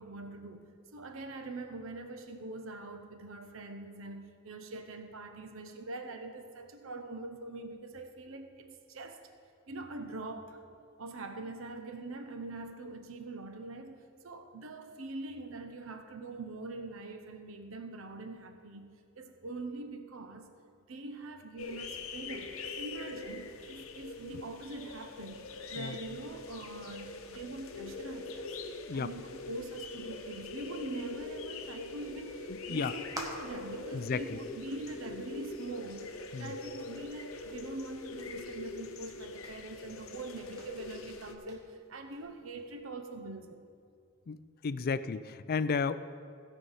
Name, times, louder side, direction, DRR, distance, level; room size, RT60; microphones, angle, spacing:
voice 1, 0.0-9.2 9.7-10.6 11.0-20.5 20.9-28.5 28.9-43.6, right 2 dB, 75° right, 7 dB, 0.7 m, -43 dB
sound 1, 21.6-41.4, left 3 dB, 85° left, 0.8 m, -43 dB
voice 2, 32.5-32.9 33.9-34.4 36.3-36.5 44.3-46.0, left 5 dB, 45° left, 14 dB, 0.4 m, -33 dB
sound 2, 32.7-42.8, right 1 dB, 15° right, 1.3 m, -52 dB
16.0 x 5.5 x 5.6 m, 2.3 s
head